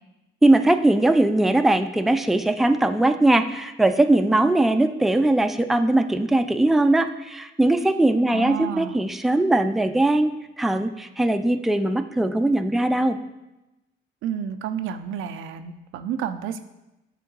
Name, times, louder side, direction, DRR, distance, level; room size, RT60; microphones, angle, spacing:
voice 1, 0.4-13.2, right 2 dB, ahead, 8 dB, 0.4 m, -20 dB
voice 2, 8.3-9.0 14.2-16.6, right 8 dB, 85° right, 9 dB, 0.5 m, -30 dB
8.3 x 3.7 x 3.9 m, 0.98 s
cardioid pair, 90°, 20 cm